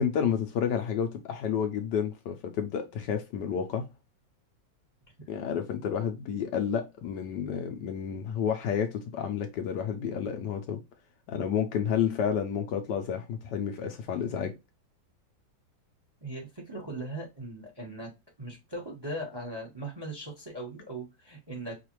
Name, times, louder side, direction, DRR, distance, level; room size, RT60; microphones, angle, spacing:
voice 1, 0.0-3.8 5.3-10.8 11.3-14.5, left 8 dB, 70° left, 1.1 m, -30 dB
voice 2, 16.2-18.1 18.4-21.7, right 1 dB, 20° right, 0.8 m, -39 dB
4.9 x 2.5 x 3.0 m
omnidirectional pair, 2.1 m